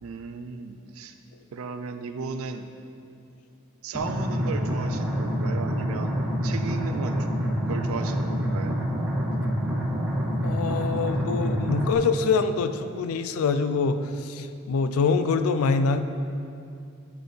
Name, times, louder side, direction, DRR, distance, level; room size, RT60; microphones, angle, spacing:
voice 1, 0.0-1.1 1.5-2.7 3.8-7.3 7.7-8.8, right 5 dB, 80° right, 8 dB, 0.4 m, -35 dB
sound 1, 3.9-11.9, equal, 5° right, 0.7 m, -27 dB
voice 2, 10.4-16.0, left 4 dB, 90° left, 10 dB, 0.4 m, -25 dB
8.9 x 4.2 x 3.2 m, 2.4 s
head